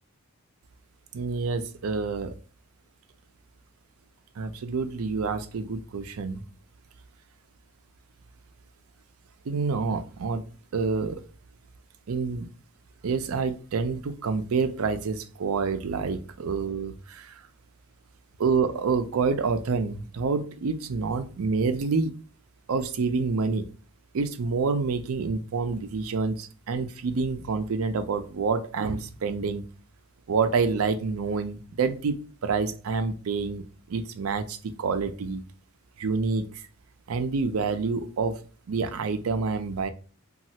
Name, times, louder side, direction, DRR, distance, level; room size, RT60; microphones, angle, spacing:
voice 1, 1.1-2.4 4.4-6.4 9.5-10.4 10.7-11.2 12.1-12.5 13.0-17.4 18.4-22.1 22.7-23.7 24.1-29.6 30.3-32.2 32.4-35.4 36.0-36.7 37.1-38.4 38.7-39.9, right 4 dB, 80° right, 9 dB, 0.5 m, -27 dB
3.1 x 2.3 x 2.7 m, 0.38 s
head